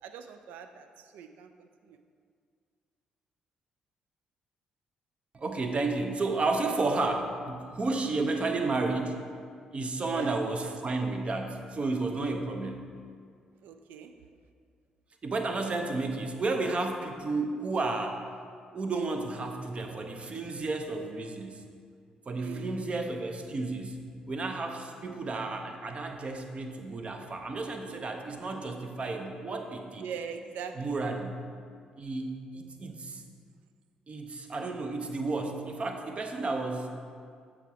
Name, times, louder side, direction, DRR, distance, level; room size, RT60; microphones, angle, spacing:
voice 1, 0.0-2.0 10.1-10.4 13.6-14.1 22.4-22.7 30.0-31.1, right 7 dB, 65° right, 8 dB, 0.4 m, -42 dB
voice 2, 5.3-9.2 9.7-12.9 15.2-18.2 18.7-21.6 22.3-30.1 30.7-31.4 32.0-33.2 34.1-36.9, right 3 dB, 35° right, 4 dB, 0.7 m, -32 dB
8.1 x 4.7 x 3.5 m, 2.2 s
figure-of-eight pair, 40°, 3 cm